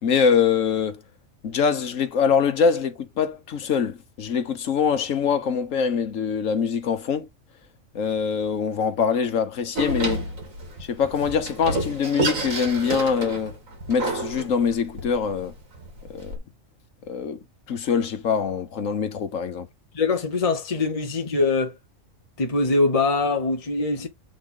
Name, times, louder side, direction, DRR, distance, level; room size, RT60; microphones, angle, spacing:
voice 1, 0.0-1.0 1.4-7.3 7.9-10.3 10.8-13.6 13.9-15.5 16.1-16.3 17.1-17.4 17.7-19.7, left 6 dB, 75° left, 1.5 m, -24 dB
Door, 9.7-16.4, right 2 dB, 85° right, 2.5 m, -30 dB
voice 2, 19.9-21.7 22.4-24.1, left 3 dB, 30° left, 0.9 m, -23 dB
7.5 x 3.9 x 3.8 m
omnidirectional pair, 1.4 m